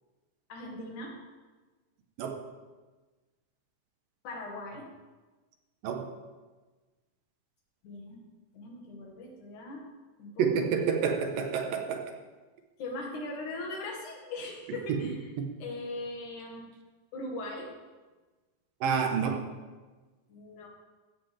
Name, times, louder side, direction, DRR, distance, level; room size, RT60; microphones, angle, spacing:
voice 1, 0.5-1.1 4.2-4.9 7.8-8.3 8.5-9.8 10.2-11.5 12.8-15.3 15.6-16.7 17.1-17.7 20.3-20.7, left 2 dB, 60° left, -1 dB, 3.5 m, -40 dB
voice 2, 10.4-12.0 14.9-15.0 18.8-19.4, right 6 dB, 75° right, 4 dB, 3.0 m, -28 dB
16.0 x 13.5 x 3.6 m, 1.3 s
omnidirectional pair, 4.2 m